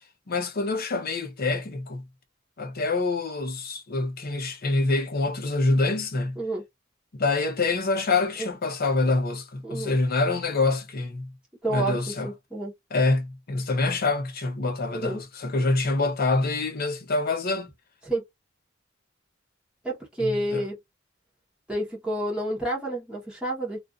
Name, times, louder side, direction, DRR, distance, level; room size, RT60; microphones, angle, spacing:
voice 1, 0.3-2.0 2.6-6.4 7.1-11.3 11.7-12.3 12.9-17.7 20.2-20.6, left 3 dB, 50° left, 0.7 m, -26 dB
voice 2, 9.6-9.9 11.6-12.7 14.9-15.2 18.0-18.2 19.8-20.8 21.7-23.8, right 1 dB, 5° right, 0.9 m, -29 dB
2.4 x 2.4 x 2.3 m
head